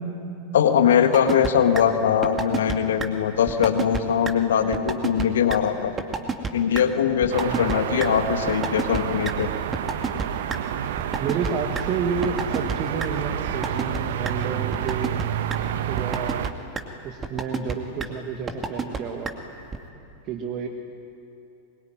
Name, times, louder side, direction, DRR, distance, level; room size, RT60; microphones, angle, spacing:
voice 1, 0.5-5.9 6.5-9.5, left 8 dB, 60° left, 8 dB, 1.6 m, -21 dB
sound 1, 1.1-1.5 1.8-1.9 2.2-2.7 3.0-3.1 3.5-4.0 4.3-4.4 4.7-5.2 5.5-5.6 6.0-6.5 6.7-6.8 7.2-7.8 8.0-8.1 8.5-9.3 9.7-10.6 11.0-11.8 12.2-12.7 13.0-13.1 13.5-14.0 14.3-14.4 14.7-15.2 15.5-15.6 16.0-16.5 16.8-16.9 17.2-17.7 18.0-18.1 18.5-19.0 19.3-19.4 19.7-19.8, right 5 dB, 20° right, 2.4 m, -27 dB
sound 2, 7.3-16.5, right 10 dB, 55° right, 1.1 m, -29 dB
voice 2, 7.4-7.8 11.2-15.2 15.9-16.5 17.0-19.4 20.2-20.7, right 6 dB, 35° right, 4 dB, 1.9 m, -30 dB
24.0 x 22.5 x 9.5 m, 2.7 s
figure-of-eight pair, 90°, 0 cm